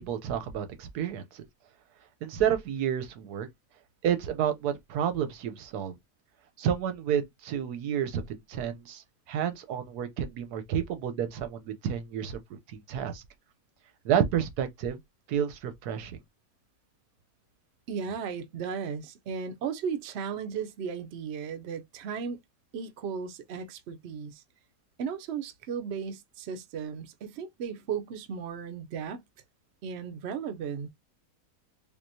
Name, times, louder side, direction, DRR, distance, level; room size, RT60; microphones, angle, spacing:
voice 1, 0.0-1.4 2.2-3.5 4.0-5.9 6.6-9.0 9.3-13.2 14.0-15.0 15.3-16.2, right 9 dB, 90° right, 1.2 m, -30 dB
voice 2, 17.9-22.4 22.7-24.4 25.0-29.2 29.8-30.9, right 6 dB, 65° right, 0.7 m, -35 dB
3.7 x 2.7 x 2.7 m
omnidirectional pair, 1.6 m